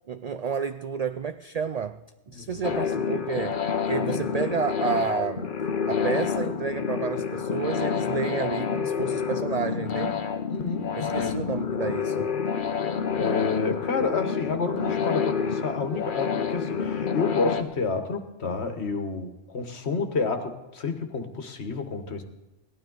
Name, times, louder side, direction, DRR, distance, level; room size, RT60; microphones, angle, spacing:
voice 1, 0.1-5.6 5.9-10.2 11.0-12.3, right 6 dB, 65° right, 10 dB, 0.4 m, -31 dB
sound 1, 2.6-17.6, left 6 dB, 50° left, 1.0 m, -28 dB
voice 2, 10.5-11.5 13.1-22.2, left 4 dB, 70° left, 6 dB, 1.6 m, -30 dB
17.5 x 12.5 x 3.9 m, 1.1 s
omnidirectional pair, 1.2 m